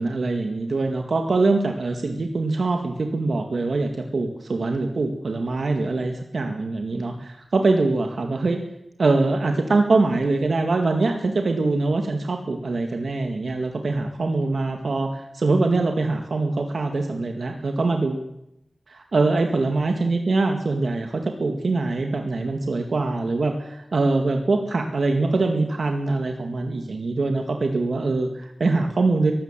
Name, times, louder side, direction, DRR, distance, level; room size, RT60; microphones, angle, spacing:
voice 1, 0.0-8.6 9.0-18.3 18.9-29.3, right 3 dB, 80° right, 4 dB, 2.0 m, -23 dB
22.5 x 15.5 x 7.5 m, 0.83 s
wide cardioid pair, 85°, 0 cm